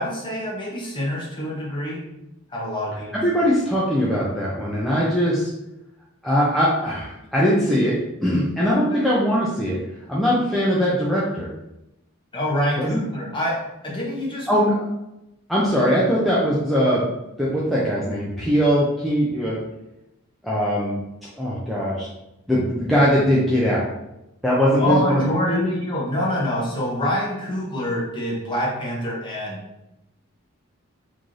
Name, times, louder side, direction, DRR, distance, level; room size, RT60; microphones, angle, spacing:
voice 1, 0.0-2.0 2.5-3.2 8.9-9.0 12.3-14.5 24.8-29.6, left 1 dB, 20° left, -4 dB, 0.9 m, -26 dB
voice 2, 3.1-5.5 6.2-9.8 10.1-11.5 12.8-13.0 14.5-14.7 15.5-17.0 17.4-19.6 20.4-21.0 21.4-22.1 22.5-23.9 24.4-25.2 25.5-25.7, equal, ahead, -8 dB, 0.5 m, -21 dB
3.1 x 2.6 x 3.7 m, 0.90 s
head